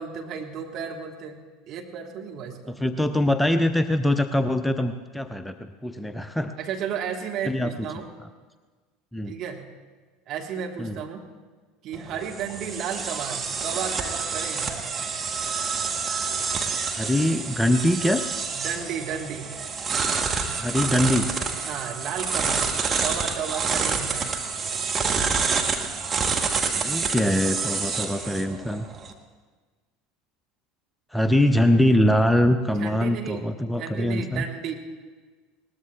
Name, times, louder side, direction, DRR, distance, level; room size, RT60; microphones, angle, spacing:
voice 1, 0.0-1.4 1.7-2.8 6.6-8.1 9.3-9.7 10.3-11.3 11.8-15.0 18.5-19.6 21.6-24.4 32.7-34.7, right 7 dB, 45° right, 1 dB, 1.6 m, -33 dB
voice 2, 2.8-6.5 7.5-7.7 9.1-9.3 10.8-11.0 17.0-18.2 20.6-21.3 26.7-28.8 31.1-34.4, left 1 dB, 5° left, 9 dB, 0.5 m, -23 dB
sound 1, 11.9-29.1, right 5 dB, 25° right, 1.3 m, -28 dB
20.5 x 19.0 x 2.4 m, 1.4 s
figure-of-eight pair, 70°, 0 cm